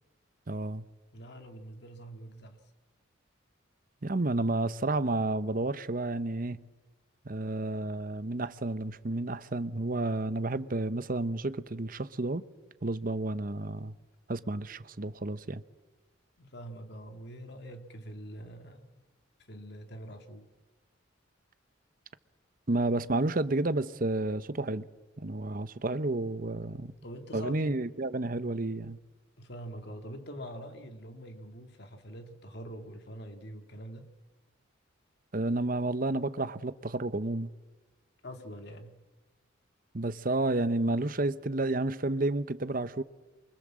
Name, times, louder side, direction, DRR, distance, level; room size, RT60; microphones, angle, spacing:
voice 1, 0.5-0.8 4.0-6.6 7.2-12.4 12.8-13.9 14.3-15.6 22.7-24.8 25.2-26.9 27.3-29.0 35.3-37.5 39.9-43.0, right 2 dB, 45° right, 0.9 m, -31 dB
voice 2, 1.1-2.6 16.4-19.0 19.5-20.5 26.9-27.8 29.4-34.1 38.2-39.0, equal, 55° left, 2.2 m, -44 dB
28.0 x 25.0 x 7.6 m
head